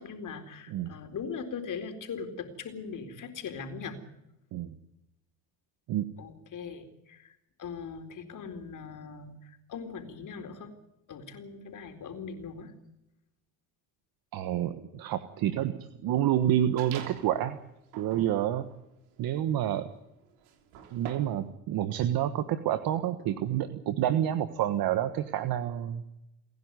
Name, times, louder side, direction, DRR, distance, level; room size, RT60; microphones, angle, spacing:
voice 1, 0.0-4.0 6.2-7.3 7.6-10.7 11.1-12.7, left 5 dB, 55° left, 7 dB, 4.2 m, -40 dB
voice 2, 14.3-15.7 16.0-17.6 18.0-18.7 19.2-19.9 20.9-26.0, right 11 dB, 65° right, 10 dB, 1.5 m, -28 dB
sound 1, 16.8-17.4 17.8-21.5, right 9 dB, 80° right, 3.6 m, -46 dB
29.0 x 11.0 x 9.7 m, 0.90 s
supercardioid pair, 80°, 38 cm